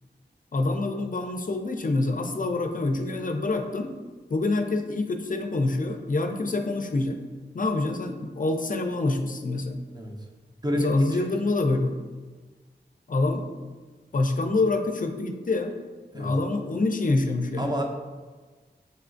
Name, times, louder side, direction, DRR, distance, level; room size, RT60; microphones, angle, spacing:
voice 1, 0.5-3.9 4.3-7.2 7.5-9.8 10.7-12.0 13.1-13.5 14.1-15.8 16.1-17.8, left 2 dB, 45° left, 5 dB, 0.4 m, -26 dB
voice 2, 9.9-10.1 10.6-10.9 11.2-11.3 16.1-16.3 17.6-17.8, equal, 20° right, 1 dB, 0.6 m, -28 dB
6.5 x 2.4 x 2.5 m, 1.4 s
wide cardioid pair, 45°, 19 cm